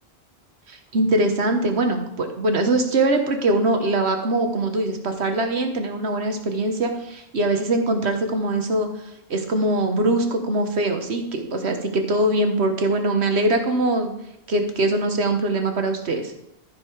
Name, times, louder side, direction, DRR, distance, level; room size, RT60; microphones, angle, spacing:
voice 1, 0.7-8.9 9.3-14.1 14.5-16.3, right 2 dB, 85° right, 5 dB, 1.5 m, -22 dB
14.0 x 4.9 x 4.9 m, 0.82 s
omnidirectional pair, 1.1 m